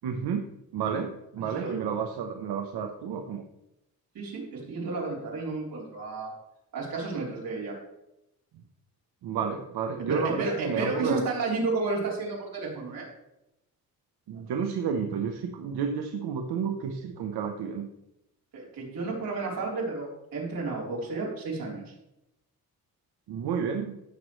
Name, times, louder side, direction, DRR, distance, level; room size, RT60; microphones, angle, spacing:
voice 1, 0.0-0.4 0.7-3.4 9.2-11.2 14.3-17.9 23.3-24.0, right 6 dB, 85° right, 4 dB, 0.9 m, -31 dB
voice 2, 1.4-1.8 4.1-6.3 6.7-7.8 10.1-13.1 18.5-21.9, right 3 dB, 60° right, -3 dB, 3.8 m, -32 dB
15.5 x 6.3 x 3.2 m, 0.89 s
wide cardioid pair, 165°, 38 cm